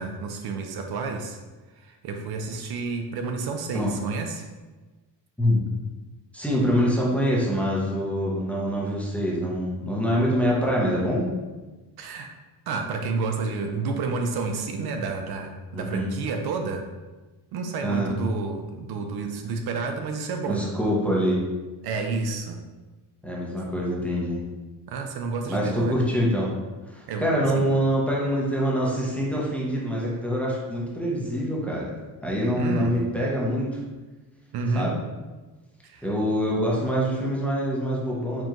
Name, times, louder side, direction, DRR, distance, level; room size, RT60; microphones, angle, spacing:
voice 1, 0.0-1.4 1.8-4.5 12.0-12.3 12.7-16.9 17.5-20.7 21.8-22.6 24.9-26.0 27.1-27.3 27.6-27.7 32.5-33.0 34.5-34.9 35.8-36.1, right 4 dB, 60° right, 4 dB, 0.6 m, -30 dB
voice 2, 6.3-11.3 15.7-16.1 17.8-18.1 20.5-21.4 23.2-24.4 25.5-26.5 26.9-31.9 32.2-33.8 34.7-35.0 36.0-38.4, equal, 5° left, -5 dB, 0.6 m, -25 dB
4.6 x 3.8 x 2.9 m, 1.2 s
cardioid pair, 170°, 42 cm